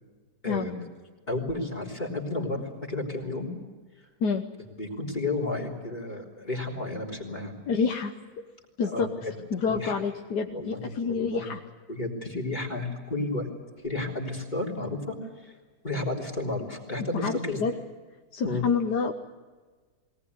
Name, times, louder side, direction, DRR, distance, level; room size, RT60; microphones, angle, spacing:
voice 1, 0.4-0.9 1.3-3.5 4.8-7.5 8.8-9.3 9.6-9.9 10.5-11.5 11.9-13.5 13.8-15.5 15.8-17.6 18.4-18.7, left 2 dB, 25° left, 2 dB, 3.7 m, -32 dB
voice 2, 7.7-8.1 8.8-9.1 9.5-11.6 17.1-17.7 18.3-19.1, left 5 dB, 80° left, 4 dB, 1.7 m, -28 dB
22.0 x 19.0 x 9.6 m, 1.4 s
omnidirectional pair, 1.7 m